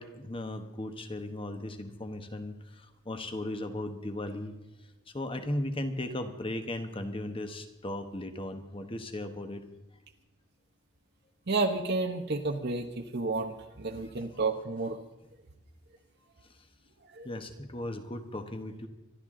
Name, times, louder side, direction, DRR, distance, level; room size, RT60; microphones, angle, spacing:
voice 1, 0.0-4.5 5.1-9.6 14.0-14.1 17.2-18.9, left 1 dB, 25° left, 7 dB, 1.2 m, -37 dB
voice 2, 11.5-15.0 17.1-17.3, right 3 dB, 55° right, 5 dB, 1.0 m, -31 dB
25.0 x 12.0 x 3.8 m, 0.96 s
head